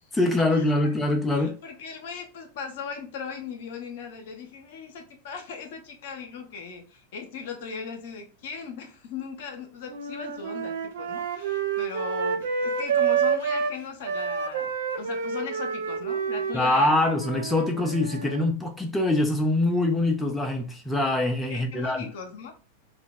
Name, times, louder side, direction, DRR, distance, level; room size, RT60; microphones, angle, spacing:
voice 1, 0.1-1.6 16.5-22.1, left 2 dB, 10° left, 0.4 m, -24 dB
voice 2, 1.3-17.0 21.5-22.5, left 6 dB, 55° left, 0.6 m, -38 dB
sound 1, 9.9-13.7 14.0-18.4, right 6 dB, 60° right, 0.4 m, -28 dB
2.8 x 2.1 x 2.6 m
figure-of-eight pair, 90°, 0 cm